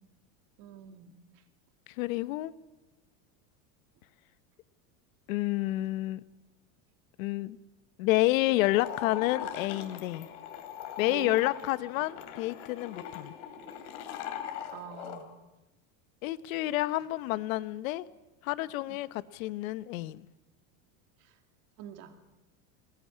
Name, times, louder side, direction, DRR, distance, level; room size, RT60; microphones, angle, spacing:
voice 1, 0.6-1.4 11.1-11.4 14.7-15.3 18.9-19.0 21.2-21.4 21.8-22.2, right 9 dB, 40° right, 2.5 m, -45 dB
voice 2, 2.0-2.5 5.3-6.2 7.2-7.6 8.0-10.3 11.0-13.3 16.2-18.1 18.4-20.3, left 17 dB, 70° left, 1.1 m, -29 dB
sound 1, 8.7-15.2, left 9 dB, 55° left, 2.9 m, -41 dB
21.0 x 20.5 x 9.7 m
supercardioid pair, 175°, 42 cm